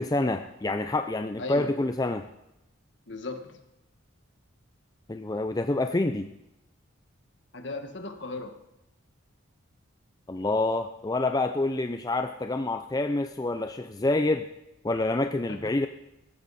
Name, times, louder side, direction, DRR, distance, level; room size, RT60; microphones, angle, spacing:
voice 1, 0.0-2.3 5.1-6.3 10.3-14.5 14.8-15.9, left 2 dB, 20° left, 7 dB, 0.4 m, -27 dB
voice 2, 1.4-1.7 3.1-3.6 7.5-8.6 15.5-15.7, left 2 dB, 55° left, 6 dB, 1.5 m, -37 dB
17.0 x 14.5 x 4.2 m, 0.91 s
head